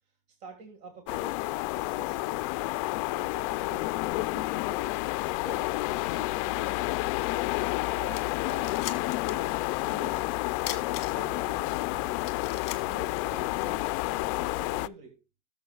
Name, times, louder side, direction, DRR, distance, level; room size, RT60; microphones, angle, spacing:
voice 1, 0.4-1.4 1.7-2.4 3.1-5.0 5.3-5.7 5.9-6.8 7.9-8.7 9.2-12.2 12.8-13.9 14.4-15.2, right 4 dB, 40° right, 4 dB, 1.8 m, -48 dB
sound 1, 1.1-14.9, left 21 dB, 65° left, 0.4 m, -30 dB
sound 2, 8.1-9.5 9.8-9.9 10.6-11.5 11.9-12.0 12.2-13.8, left 13 dB, 40° left, 1.5 m, -39 dB
17.5 x 7.0 x 2.3 m, 0.28 s
cardioid pair, 180°, 17 cm